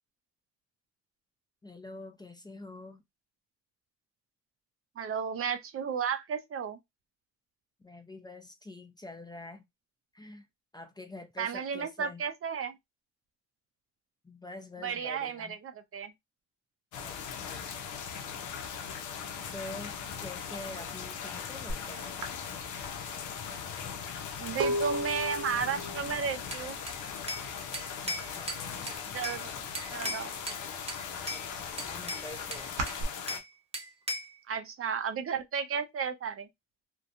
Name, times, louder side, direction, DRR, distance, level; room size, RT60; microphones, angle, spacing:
voice 1, 1.6-3.0 7.8-9.6 10.1-10.5 10.7-12.2 14.2-15.6 17.0-17.8 19.5-19.9 20.2-22.2 27.7-29.0 31.2-32.7, left 2 dB, 15° left, 0.5 m, -46 dB
voice 2, 5.0-6.8 11.4-12.8 14.8-16.1 24.4-26.8 29.1-29.5 29.9-30.3 34.5-36.5, right 6 dB, 45° right, 0.5 m, -33 dB
sound 1, 16.9-33.4, left 7 dB, 80° left, 0.6 m, -39 dB
sound 2, 21.7-21.9 22.2-27.9 28.1-28.7 28.9-30.1 30.5-33.0, right 1 dB, 85° right, 0.8 m, -36 dB
Bell / Glass, 26.5-27.5 27.7-29.4 29.7-30.6 30.9-31.4 31.8-33.5 33.7-34.4, equal, 20° right, 0.9 m, -38 dB
2.7 x 2.2 x 2.5 m
cardioid pair, 90°, 30 cm